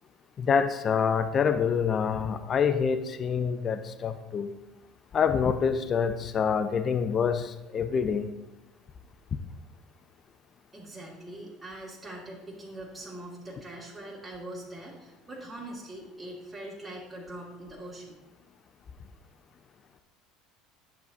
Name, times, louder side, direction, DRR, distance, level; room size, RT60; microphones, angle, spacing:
voice 1, 0.4-4.5 5.1-8.3, left 6 dB, 40° left, 10 dB, 0.6 m, -26 dB
voice 2, 10.7-18.2, right 1 dB, 15° right, -6 dB, 2.3 m, -42 dB
10.5 x 7.1 x 2.8 m, 1.0 s
hypercardioid pair, 75°, 0 cm